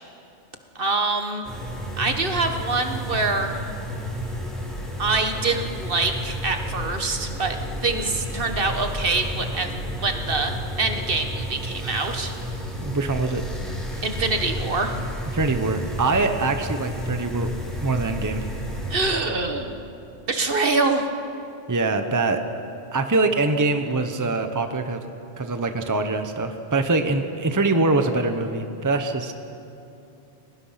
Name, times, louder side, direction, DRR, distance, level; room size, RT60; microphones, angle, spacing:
voice 1, 0.7-1.5 2.0-3.6 5.0-7.6 7.8-12.3 14.0-14.9 18.9-19.8 20.3-21.0, right 3 dB, 55° right, 6 dB, 1.5 m, -25 dB
sound 1, 1.4-19.1, equal, ahead, 4.2 m, -31 dB
voice 2, 12.8-13.4 15.3-17.5 17.8-18.5 21.7-22.4 22.9-25.0 25.4-29.3, right 3 dB, 20° right, 7 dB, 0.9 m, -23 dB
30.0 x 18.0 x 5.8 m, 2.8 s
omnidirectional pair, 1.1 m